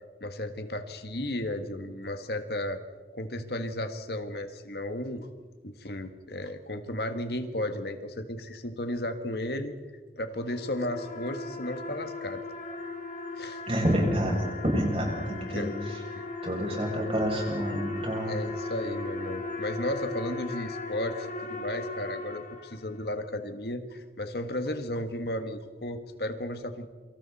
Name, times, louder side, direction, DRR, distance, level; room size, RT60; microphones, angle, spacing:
voice 1, 0.2-2.8 3.1-5.3 5.6-9.7 10.2-12.4 13.4-13.6 15.5-15.8 16.2-16.3 18.2-26.9, left 1 dB, 60° left, 7 dB, 1.7 m, -34 dB
sound 1, 10.3-23.1, left 3 dB, 45° left, 3.1 m, -37 dB
voice 2, 13.7-15.7 16.4-18.4, equal, 35° right, -1 dB, 7.3 m, -28 dB
28.5 x 25.5 x 4.3 m, 1.3 s
head